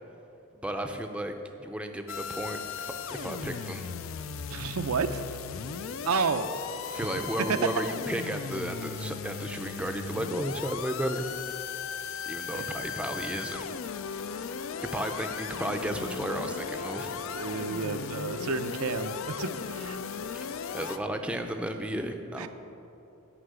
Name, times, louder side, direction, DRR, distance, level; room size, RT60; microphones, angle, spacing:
voice 1, 0.5-3.9 6.9-11.2 12.3-13.7 14.8-17.1 20.3-20.5 20.7-22.5, right 1 dB, 5° right, 5 dB, 0.5 m, -33 dB
sound 1, 2.1-21.0, left 6 dB, 70° left, 0.4 m, -37 dB
voice 2, 4.5-5.2 6.0-6.5 7.0-7.1 7.4-7.7 12.5-12.8 17.3-20.0 22.4-22.5, right 5 dB, 90° right, 9 dB, 0.6 m, -30 dB
9.9 x 5.8 x 8.1 m, 2.9 s
head